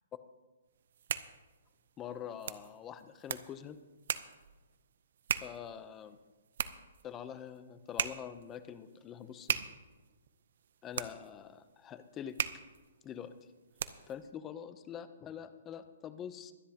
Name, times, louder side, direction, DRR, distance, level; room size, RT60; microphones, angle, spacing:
sound 1, 0.8-14.2, right 8 dB, 60° right, 0.6 m, -40 dB
voice 1, 2.0-3.8 5.4-6.2 7.0-9.6 10.8-12.4 13.0-13.3 14.1-16.5, left 9 dB, 15° left, 12 dB, 0.6 m, -45 dB
23.0 x 10.0 x 2.9 m, 1.2 s
hypercardioid pair, 160°, 0 cm